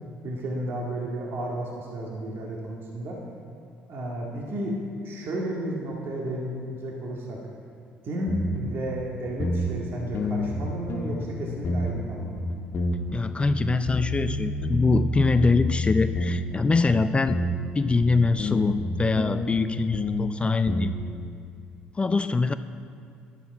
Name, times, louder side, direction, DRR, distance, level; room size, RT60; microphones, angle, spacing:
voice 1, 0.2-3.2 3.9-7.4 8.0-12.4, right 1 dB, 55° right, -2 dB, 1.9 m, -32 dB
sound 1, 8.3-8.7 9.0-9.1 9.4-9.8 10.1-11.3 11.6-12.1 12.4-13.2 13.5-16.6 16.9-19.6 19.9-20.3 20.7-21.1, left 1 dB, 50° left, 1.3 m, -28 dB
voice 2, 13.1-17.4 17.7-20.9 22.0-22.5, left 3 dB, 25° left, 11 dB, 0.5 m, -23 dB
11.5 x 11.0 x 4.8 m, 2.3 s
hypercardioid pair, 55°, 5 cm